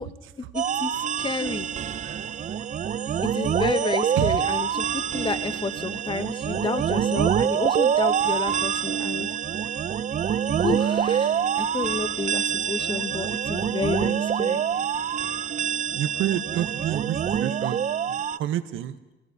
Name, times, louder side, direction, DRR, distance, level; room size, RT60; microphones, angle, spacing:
voice 1, 0.5-1.7 3.2-4.8 5.1-9.3 10.6-14.6, left 4 dB, 25° left, 12 dB, 0.8 m, -30 dB
sound 1, 0.5-18.4, right 8 dB, 40° right, 0.4 m, -26 dB
voice 2, 1.9-2.3 3.0-3.2 4.1-4.5 15.9-19.0, right 12 dB, 85° right, 11 dB, 0.8 m, -30 dB
29.5 x 16.5 x 2.7 m, 1.1 s
cardioid pair, 90°, 20 cm